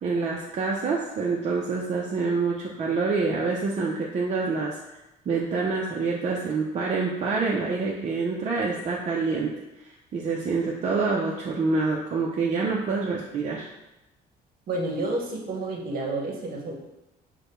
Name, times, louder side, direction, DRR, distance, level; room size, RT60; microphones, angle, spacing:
voice 1, 0.0-4.7 5.3-9.5 10.1-13.7, right 4 dB, 45° right, -3 dB, 0.6 m, -26 dB
voice 2, 14.7-16.7, right 2 dB, 60° right, 0 dB, 1.0 m, -30 dB
4.8 x 2.2 x 4.5 m, 0.97 s
cardioid pair, 110°, 17 cm